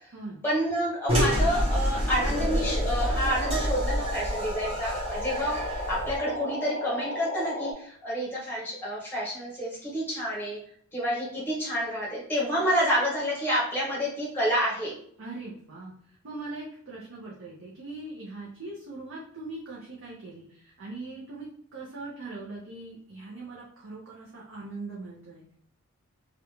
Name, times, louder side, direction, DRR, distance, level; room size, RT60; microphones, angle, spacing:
voice 1, 0.4-5.6 5.9-10.6 10.9-15.0, equal, 10° left, -5 dB, 0.7 m, -29 dB
sound 1, 1.1-6.2, equal, 25° right, 0.7 m, -28 dB
sound 2, 2.3-7.7, left 1 dB, 45° left, 0.5 m, -34 dB
voice 2, 15.2-25.4, right 2 dB, 60° right, -5 dB, 0.5 m, -41 dB
2.5 x 2.2 x 2.9 m, 0.65 s
head